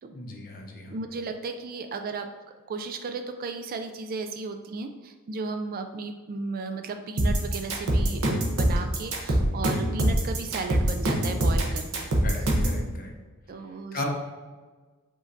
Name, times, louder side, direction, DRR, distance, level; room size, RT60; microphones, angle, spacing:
voice 1, 0.1-0.9 12.2-13.1 13.9-14.1, left 2 dB, 40° left, 0 dB, 0.8 m, -36 dB
voice 2, 0.9-2.3 2.7-12.1 13.5-14.1, right 3 dB, 40° right, 7 dB, 0.3 m, -35 dB
sound 1, 7.2-12.8, right 1 dB, 70° right, 0.8 m, -23 dB
5.0 x 3.8 x 2.6 m, 1.4 s
head